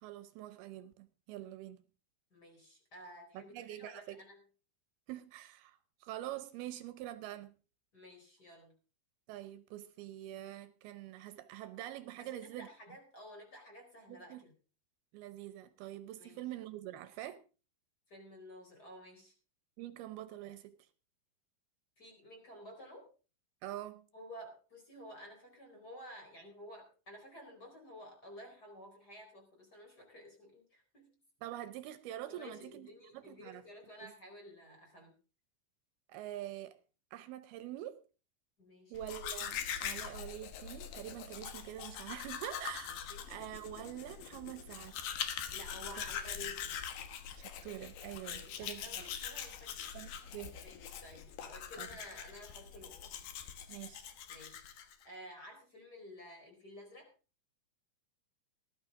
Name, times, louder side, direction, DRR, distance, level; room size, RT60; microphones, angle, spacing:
voice 1, 0.0-1.8 3.3-4.2 5.1-7.5 9.3-12.7 14.1-14.4 15.1-17.4 19.8-20.8 23.6-24.0 31.4-32.9 33.1-33.6 34.0-34.1 36.1-36.8 37.1-38.0 38.9-45.0 47.4-49.1 49.9-50.5 51.8-51.9 53.7-54.1, right 13 dB, 80° right, 2.7 m, -45 dB
voice 2, 2.3-4.4 7.9-8.7 12.2-14.5 16.2-16.4 18.1-19.3 22.0-23.1 24.1-31.2 32.3-35.1 38.6-39.1 42.9-43.3 45.5-46.8 48.2-50.1 50.6-53.1 54.3-57.1, equal, 25° left, 4.6 m, -52 dB
Domestic sounds home sounds, 39.0-55.0, left 8 dB, 70° left, 2.8 m, -43 dB
19.0 x 11.5 x 3.7 m
omnidirectional pair, 4.6 m